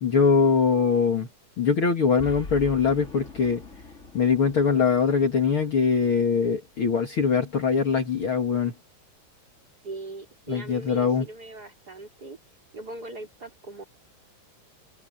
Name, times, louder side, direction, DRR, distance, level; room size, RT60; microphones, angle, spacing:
voice 1, 0.0-1.3 1.6-3.6 4.1-8.7 10.5-11.3, left 5 dB, 45° left, 2.5 m, -22 dB
Boom, 2.2-6.6, left 2 dB, 25° left, 3.0 m, -43 dB
voice 2, 9.8-12.4 12.7-13.8, right 2 dB, 30° right, 4.4 m, -40 dB
omnidirectional pair, 3.6 m